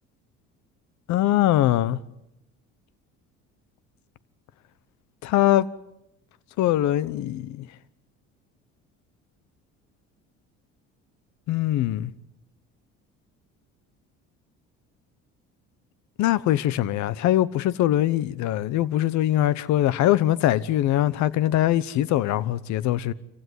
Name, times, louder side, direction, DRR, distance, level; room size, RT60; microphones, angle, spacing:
voice 1, 1.1-2.0 5.2-5.7 6.6-7.7 11.5-12.1 16.2-23.1, left 13 dB, 65° left, 1.0 m, -22 dB
26.0 x 15.5 x 9.6 m
supercardioid pair, 80°, 30 cm